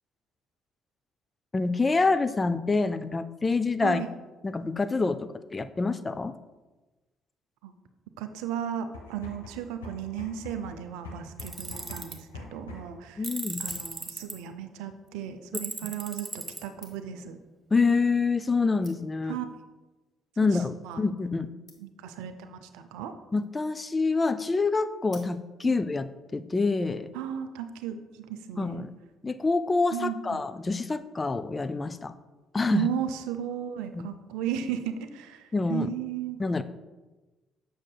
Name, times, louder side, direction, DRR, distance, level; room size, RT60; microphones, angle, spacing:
voice 1, 1.5-4.0 4.4-6.4 13.2-13.7 15.5-15.6 17.7-19.4 20.4-21.5 23.3-27.1 28.6-28.9 29.2-32.1 32.5-32.9 33.9-34.0 35.5-35.9 36.4-36.6, left 3 dB, 25° left, 11 dB, 0.3 m, -26 dB
voice 2, 8.2-13.3 13.6-17.4 19.2-19.5 20.8-21.0 21.8-23.1 25.6-25.7 27.1-28.9 29.9-30.4 32.7-36.4, right 9 dB, 70° right, 9 dB, 0.4 m, -35 dB
sound 1, 8.8-13.0, left 3 dB, 85° left, 0.7 m, -44 dB
Tools, 11.4-12.2 13.2-14.3 15.5-16.6, right 3 dB, 25° right, 0.9 m, -36 dB
sound 2, 13.5-14.5 15.4-15.5 16.3-17.3 18.1-18.2 18.5-18.6 18.8-19.3 20.1-20.3 20.6-20.7 20.9-21.0 21.2-21.3 21.7-22.1 23.2-23.6 25.1-25.7 26.3-26.4, left 3 dB, 45° left, 1.3 m, -53 dB
7.3 x 6.3 x 2.2 m, 1.2 s
figure-of-eight pair, 45°, 0 cm